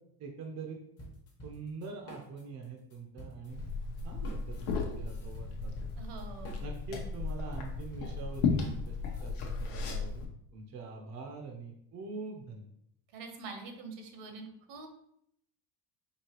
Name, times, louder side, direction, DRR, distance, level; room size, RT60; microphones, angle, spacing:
voice 1, 0.2-0.8 1.4-3.6 4.0-5.9 6.6-10.3 10.5-12.7, right 4 dB, 35° right, 2 dB, 0.6 m, -44 dB
sound 1, 1.0-2.7 2.9-9.7, equal, 30° left, 1.0 m, -49 dB
Liquid, 3.5-10.3, left 4 dB, 75° left, 1.0 m, -35 dB
voice 2, 6.0-6.7 13.1-14.9, right 4 dB, 70° right, 5 dB, 1.0 m, -45 dB
4.7 x 2.8 x 2.9 m, 0.72 s
cardioid pair, 140°, 45 cm